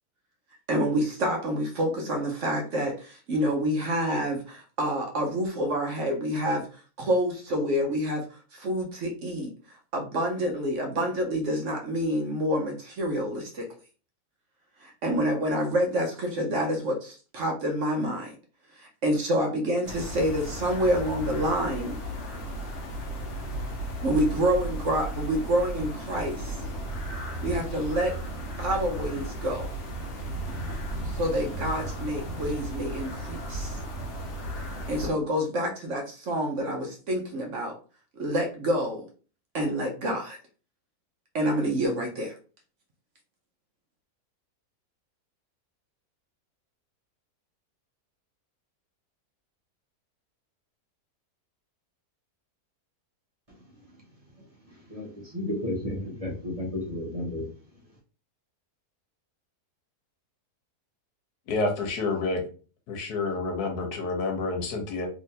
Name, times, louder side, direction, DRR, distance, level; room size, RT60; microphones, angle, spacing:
voice 1, 0.7-9.5 9.9-13.7 14.8-18.3 18.7-22.0 24.0-26.6 27.4-28.1 28.6-29.7 31.0-33.8 34.9-37.8 38.2-39.1 39.5-40.4 41.3-42.4, equal, 60° right, 2 dB, 0.9 m, -28 dB
sound 1, 19.8-35.1, right 1 dB, 55° left, 1.1 m, -35 dB
voice 2, 54.9-57.5, left 1 dB, 25° right, -4 dB, 0.9 m, -32 dB
voice 3, 61.5-62.4 62.9-65.1, left 3 dB, 80° left, 3 dB, 1.5 m, -28 dB
3.4 x 3.0 x 2.7 m, 0.37 s
omnidirectional pair, 1.7 m